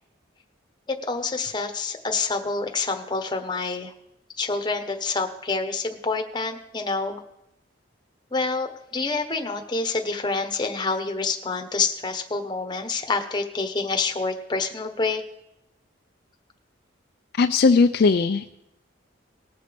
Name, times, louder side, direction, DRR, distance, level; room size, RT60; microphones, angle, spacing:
voice 1, 0.9-3.9 4.4-7.2 8.3-15.2, left 3 dB, 25° left, 5 dB, 1.0 m, -27 dB
voice 2, 17.4-18.6, left 4 dB, 55° left, 7 dB, 0.4 m, -19 dB
19.0 x 6.7 x 5.1 m, 0.83 s
head